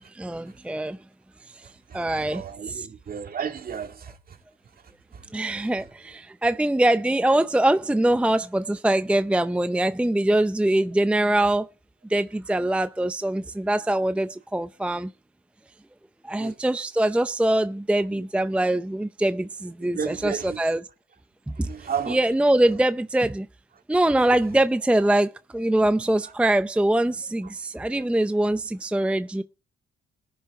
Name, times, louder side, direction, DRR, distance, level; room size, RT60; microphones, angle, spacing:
voice 1, 0.1-1.0 1.5-2.4 2.7-2.9 5.3-11.7 12.1-15.1 16.2-20.8 21.6-21.7 22.1-23.5 23.9-29.4, right 1 dB, 5° right, 0.5 m, -23 dB
voice 2, 1.9-4.4 4.7-5.2 5.6-5.8 16.4-16.6 18.2-18.3 19.8-20.8 21.5-22.2 26.2-26.3 27.9-28.1, right 7 dB, 50° right, 2.3 m, -34 dB
18.5 x 10.0 x 3.7 m
cardioid pair, 90°, 20 cm